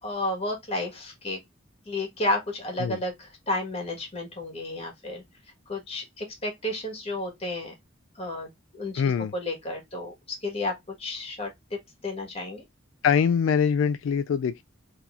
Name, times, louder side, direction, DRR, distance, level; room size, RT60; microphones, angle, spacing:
voice 1, 0.0-1.4 1.8-5.2 5.7-7.7 8.1-9.0 9.3-10.1 10.4-11.8 12.0-12.6, left 2 dB, 30° left, 1.6 m, -32 dB
voice 2, 9.0-9.3 13.0-14.6, left 7 dB, 75° left, 0.3 m, -23 dB
3.8 x 2.9 x 3.5 m
head